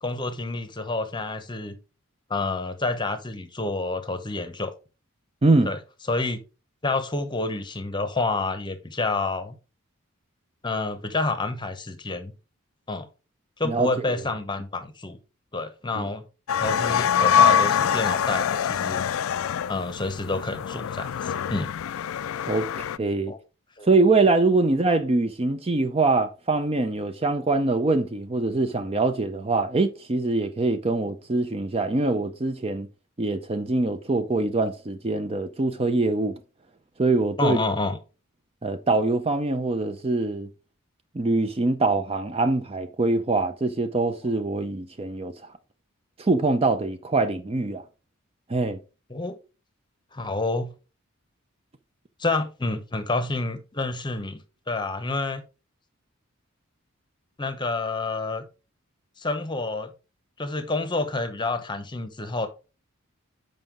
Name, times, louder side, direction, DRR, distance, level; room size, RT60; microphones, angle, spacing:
voice 1, 0.0-1.7 2.3-4.7 5.7-5.8 6.1-6.4 6.8-9.5 10.6-12.3 12.9-13.1 13.6-15.2 15.5-16.2 16.6-19.1 19.7-21.7 23.3-23.4 23.8-23.9 37.4-38.0 49.1-49.4 50.1-50.7 52.2-54.4 54.7-55.4 57.4-58.4 59.2-59.9 60.4-62.5, left 3 dB, 20° left, 0.8 m, -28 dB
voice 2, 5.4-5.7 13.6-14.1 15.9-16.1 22.5-23.3 23.8-32.9 33.2-36.4 37.0-37.6 38.6-40.5 41.1-45.5 46.2-47.8 48.5-48.8, right 3 dB, 25° right, 0.5 m, -24 dB
sound 1, 16.5-23.0, left 8 dB, 70° left, 0.3 m, -24 dB
7.5 x 5.3 x 3.7 m
head